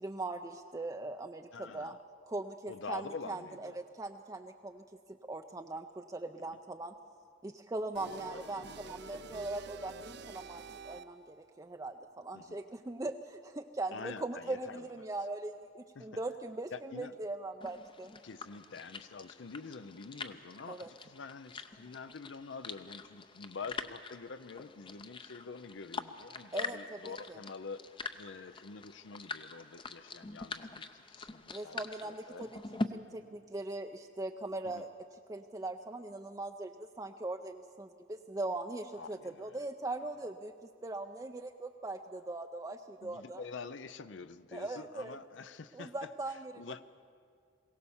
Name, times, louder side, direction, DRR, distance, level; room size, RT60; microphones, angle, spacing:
voice 1, 0.0-2.0 2.3-6.9 7.4-18.1 20.7-20.9 26.5-26.8 27.0-27.4 31.5-32.5 32.9-34.9 35.3-43.4 44.5-45.2 45.7-46.5, right 2 dB, 15° right, 5 dB, 0.5 m, -40 dB
voice 2, 1.5-2.0 2.7-3.8 6.4-6.5 8.0-9.4 12.3-12.6 13.9-14.9 15.9-16.2 16.7-17.2 18.2-27.8 28.1-32.5 34.6-34.9 39.0-39.7 43.0-46.8, left 4 dB, 65° left, 13 dB, 0.6 m, -47 dB
sound 1, 7.9-11.4, right 5 dB, 55° right, 0.6 m, -49 dB
sound 2, 17.6-32.9, left 3 dB, 25° left, 0.6 m, -44 dB
22.0 x 17.0 x 7.1 m, 2.2 s
head